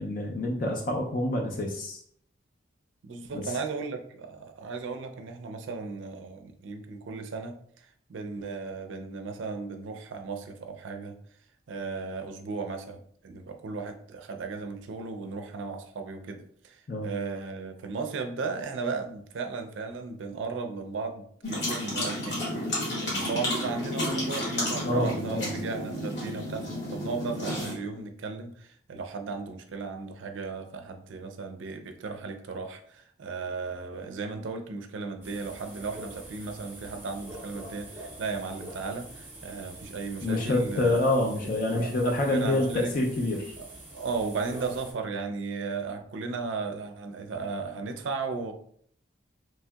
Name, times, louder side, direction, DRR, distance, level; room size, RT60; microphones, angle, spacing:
voice 1, 0.0-2.0 3.3-3.4 16.9-17.1 24.9-25.5 40.2-43.5, left 2 dB, 45° left, 0 dB, 0.4 m, -27 dB
voice 2, 3.0-11.1 11.7-41.0 41.4-41.9 42.3-42.9 43.6-48.5, right 4 dB, 80° right, 6 dB, 0.4 m, -36 dB
sound 1, 21.4-27.7, left 1 dB, 65° left, 1.2 m, -31 dB
sound 2, 35.2-44.9, right 1 dB, 10° right, 0.7 m, -45 dB
3.1 x 2.7 x 2.2 m, 0.63 s
head